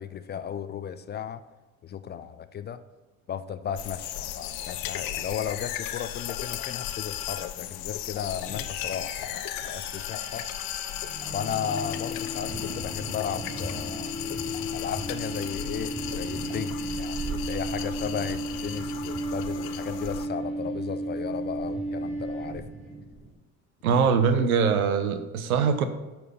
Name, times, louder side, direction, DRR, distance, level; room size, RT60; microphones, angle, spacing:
voice 1, 0.0-1.4 1.8-2.8 3.3-10.5 11.3-14.1 14.7-22.7 23.9-24.0, left 8 dB, 25° left, 12 dB, 0.4 m, -35 dB
sound 1, 3.8-20.3, left 12 dB, 55° left, 0.8 m, -36 dB
sound 2, 8.5-22.9, right 1 dB, ahead, 2.3 m, -35 dB
sound 3, 12.4-23.3, right 2 dB, 25° right, 3.0 m, -41 dB
voice 2, 23.8-25.9, right 6 dB, 85° right, 10 dB, 0.8 m, -22 dB
9.1 x 4.4 x 5.5 m, 1.2 s
hypercardioid pair, 70°, 42 cm